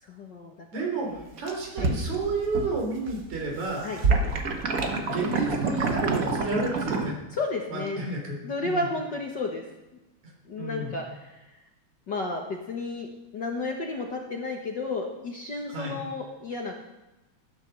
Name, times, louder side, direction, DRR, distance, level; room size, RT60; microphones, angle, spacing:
voice 1, 0.0-0.6 0.8-1.3 1.8-1.9 3.8-4.0 7.3-8.0 8.4-9.6 10.5-11.5 12.1-16.8, left 3 dB, 45° left, 1 dB, 1.6 m, -32 dB
voice 2, 0.7-3.8 5.0-7.2 7.7-8.8 10.6-10.9 15.7-16.0, right 3 dB, 70° right, 0 dB, 4.9 m, -31 dB
sound 1, 1.2-2.8 3.1-7.1, right 3 dB, 55° right, 0.9 m, -27 dB
15.0 x 10.0 x 6.6 m, 0.98 s
omnidirectional pair, 3.4 m